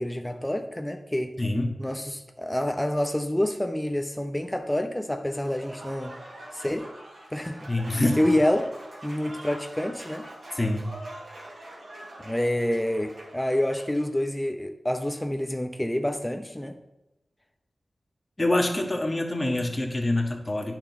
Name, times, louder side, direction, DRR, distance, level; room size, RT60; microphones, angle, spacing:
voice 1, 0.0-1.3 1.8-6.2 6.5-6.9 7.3-7.7 8.2-8.7 9.0-10.3 12.2-16.8, left 1 dB, 10° left, 6 dB, 0.7 m, -27 dB
voice 2, 1.4-1.8 7.7-8.2 10.5-11.0 18.4-20.8, left 1 dB, 30° left, 2 dB, 1.6 m, -25 dB
Applause / Crowd, 5.3-14.1, right 1 dB, 70° right, 3.3 m, -44 dB
10.0 x 6.2 x 4.1 m, 1.0 s
cardioid pair, 45°, 0 cm